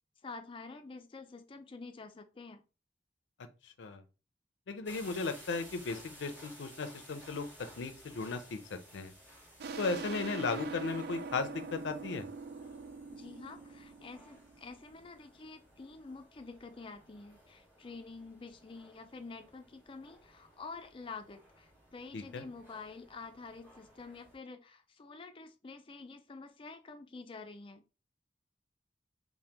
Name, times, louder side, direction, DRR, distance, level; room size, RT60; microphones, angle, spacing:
voice 1, 0.2-2.6 13.1-27.8, left 4 dB, 30° left, 0.4 m, -48 dB
voice 2, 3.6-4.0 4.7-7.5 7.8-9.1 9.8-12.3 22.1-22.4, left 4 dB, 85° left, 0.5 m, -36 dB
sound 1, 4.8-24.4, equal, 10° right, 1.1 m, -57 dB
sound 2, 9.6-14.9, right 4 dB, 60° right, 0.3 m, -43 dB
2.9 x 2.1 x 3.3 m
head